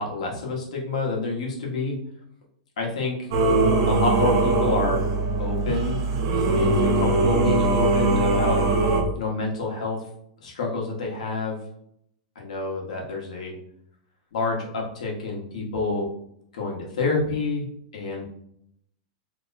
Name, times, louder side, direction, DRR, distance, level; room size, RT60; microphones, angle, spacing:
voice 1, 0.0-2.0 2.8-3.3 3.9-5.0 5.4-6.0 6.6-8.6 9.1-10.0 10.4-11.6 12.3-13.6 14.3-16.1 16.5-17.7 17.9-18.2, left 3 dB, 80° left, -1 dB, 1.1 m, -28 dB
Singing / Musical instrument, 3.3-9.0, right 2 dB, 45° right, 0.6 m, -21 dB
2.8 x 2.1 x 3.9 m, 0.72 s
supercardioid pair, 170°, 4 cm